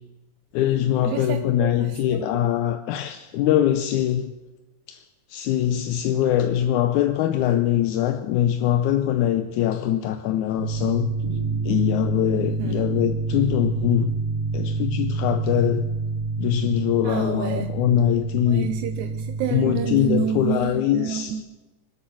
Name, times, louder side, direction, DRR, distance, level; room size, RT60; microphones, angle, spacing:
voice 1, 0.5-4.3 4.9-5.0 5.3-11.2 11.7-14.2 14.5-15.9 16.4-18.7 19.5-21.4, left 11 dB, 80° left, 2.0 m, -23 dB
voice 2, 1.0-2.5 12.3-13.0 17.0-17.8 18.4-21.4, right 9 dB, 80° right, 2.1 m, -30 dB
sound 1, 10.6-20.4, right 4 dB, 30° right, 4.7 m, -28 dB
24.5 x 8.2 x 6.3 m
omnidirectional pair, 3.5 m